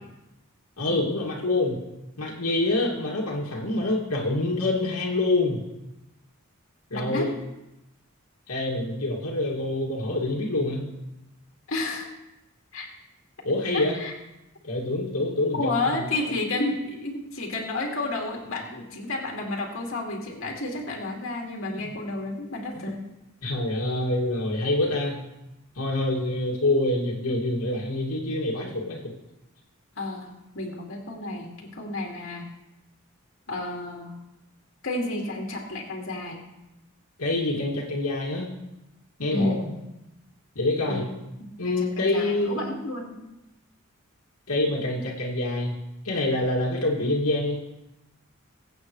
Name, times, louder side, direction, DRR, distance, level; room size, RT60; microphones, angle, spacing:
voice 1, 0.8-1.8 2.2-5.6 6.9-7.3 8.5-10.8 13.4-14.0 14.6-16.4 21.8-21.9 22.7-22.9 23.4-25.2 25.8-29.0 37.2-38.5 39.2-39.6 40.6-41.0 41.6-42.6 44.5-45.7 46.0-47.6, left 2 dB, 90° left, -3 dB, 2.3 m, -26 dB
voice 2, 6.9-7.3 11.7-12.1 12.7-12.9 13.7-14.1 15.5-23.1 30.0-32.5 33.5-34.2 34.8-36.4 39.3-39.7 40.9-41.1 41.6-43.2, left 2 dB, 65° left, -1 dB, 2.3 m, -31 dB
21.5 x 8.5 x 3.2 m, 0.95 s
head